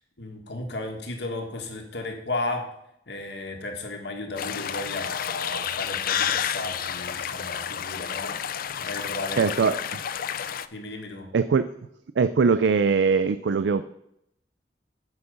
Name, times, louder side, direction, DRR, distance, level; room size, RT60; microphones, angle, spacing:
voice 1, 0.2-2.6 3.1-8.4 8.8-9.5 10.7-11.3, left 2 dB, 70° left, 2 dB, 1.8 m, -34 dB
sound 1, 4.4-10.7, left 9 dB, 55° left, 0.4 m, -30 dB
voice 2, 9.4-9.7 11.3-11.6 12.2-13.8, right 5 dB, 85° right, 12 dB, 0.4 m, -21 dB
9.8 x 5.7 x 5.3 m, 0.75 s
head